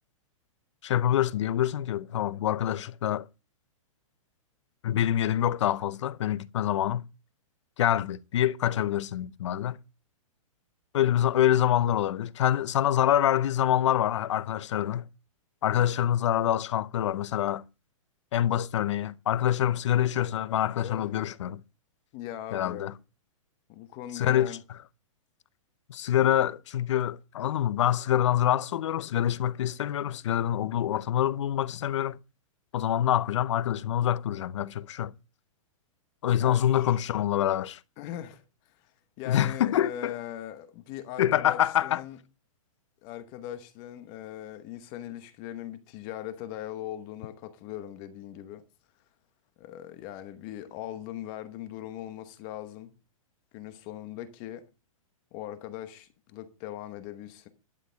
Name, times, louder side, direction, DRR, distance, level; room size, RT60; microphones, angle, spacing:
voice 1, 0.8-3.3 4.8-7.1 7.8-9.8 10.9-15.1 15.6-17.6 18.3-21.6 22.5-22.9 24.1-24.6 25.9-32.2 32.7-35.1 36.2-37.8 39.3-40.1 41.2-42.0, left 11 dB, 60° left, 0.7 m, -26 dB
voice 2, 20.8-21.1 22.1-22.9 23.7-24.6 36.4-37.0 38.0-38.9 39.2-42.2 43.0-48.6 49.6-52.9 53.5-54.7 55.3-57.5, left 12 dB, 25° left, 1.0 m, -40 dB
11.5 x 6.6 x 6.3 m
hypercardioid pair, 170°, 18 cm